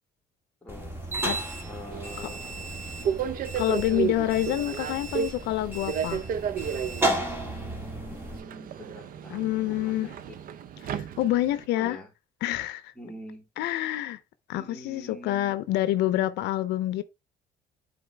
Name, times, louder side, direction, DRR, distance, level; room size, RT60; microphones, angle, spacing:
voice 1, 0.6-0.9 1.6-2.7 3.5-4.0 7.2-10.3 11.2-12.1 12.9-13.5 14.5-15.6, equal, 5° left, 2.8 m, -45 dB
sound 1, 0.7-8.4, right 1 dB, 15° right, 1.7 m, -33 dB
Subway metro underground, 1.9-11.7, right 8 dB, 55° right, 0.6 m, -33 dB
voice 2, 3.6-6.2 9.3-10.1 10.8-12.0 12.4-12.9 13.6-14.2 14.5-17.0, left 14 dB, 85° left, 0.5 m, -27 dB
7.8 x 4.0 x 3.4 m
cardioid pair, 110°, 17 cm